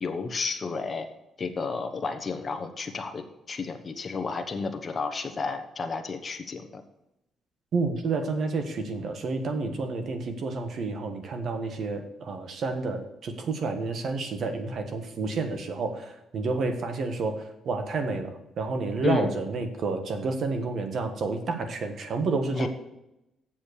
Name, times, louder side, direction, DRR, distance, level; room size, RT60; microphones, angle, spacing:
voice 1, 0.0-1.1 1.4-6.8 19.0-19.4 22.6-22.7, left 4 dB, 35° left, 7 dB, 1.1 m, -32 dB
voice 2, 7.7-22.7, right 3 dB, 60° right, 6 dB, 1.5 m, -30 dB
7.4 x 7.2 x 6.6 m, 0.90 s
cardioid pair, 90°, 0 cm